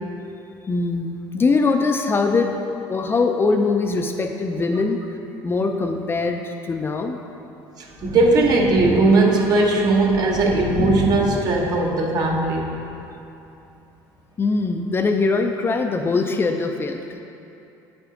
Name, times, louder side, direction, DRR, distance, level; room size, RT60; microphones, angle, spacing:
voice 1, 0.7-5.0 5.4-7.2 14.4-17.2, left 3 dB, 25° left, 4 dB, 0.5 m, -22 dB
voice 2, 7.8-12.7, right 2 dB, 50° right, 0 dB, 1.1 m, -18 dB
Thunder, 7.9-13.0 13.5-13.6 14.9-15.0, left 1 dB, 80° left, 1.6 m, -31 dB
7.9 x 5.9 x 3.8 m, 2.8 s
supercardioid pair, 100°, 9 cm